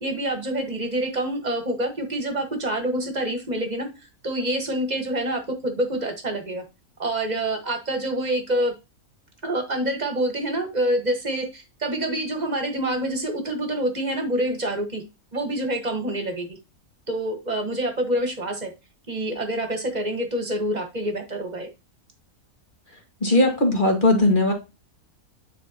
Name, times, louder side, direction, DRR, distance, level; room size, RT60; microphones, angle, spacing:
voice 1, 0.0-3.9 4.2-6.6 7.0-8.7 9.4-15.0 15.3-16.6 17.1-18.7 19.1-21.7, right 1 dB, 30° right, 4 dB, 1.5 m, -26 dB
voice 2, 23.2-24.5, left 1 dB, 35° left, 3 dB, 1.9 m, -18 dB
9.5 x 4.5 x 2.9 m, 0.26 s
omnidirectional pair, 1.4 m